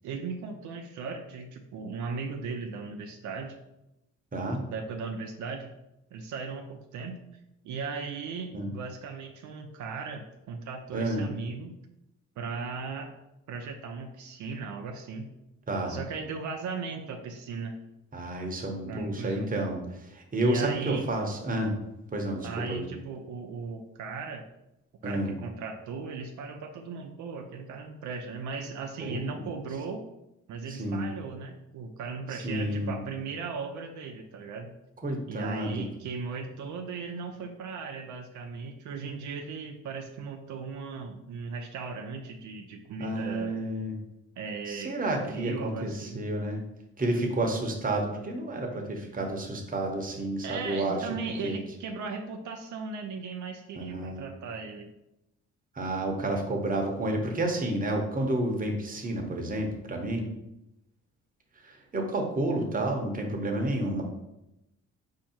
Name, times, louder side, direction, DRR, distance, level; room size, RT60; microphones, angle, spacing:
voice 1, 0.0-3.6 4.7-5.7 6.1-7.2 7.6-11.8 12.4-13.1 13.5-15.3 15.9-17.7 18.9-19.5 20.4-21.1 22.4-24.5 25.0-30.0 30.5-34.7 35.3-43.6 44.4-45.0 45.3-46.2 50.4-54.9, right 5 dB, 75° right, 3 dB, 0.6 m, -37 dB
voice 2, 10.9-11.3 15.7-16.0 18.1-21.8 22.1-22.9 25.0-25.3 29.0-29.5 30.7-31.1 32.3-32.9 35.0-35.8 43.0-44.0 44.7-46.6 47.0-51.1 51.4-51.6 53.8-54.2 55.7-60.3 61.6-64.0, right 1 dB, 30° right, 2 dB, 1.0 m, -30 dB
4.4 x 2.8 x 4.3 m, 0.89 s
cardioid pair, 90°, 30 cm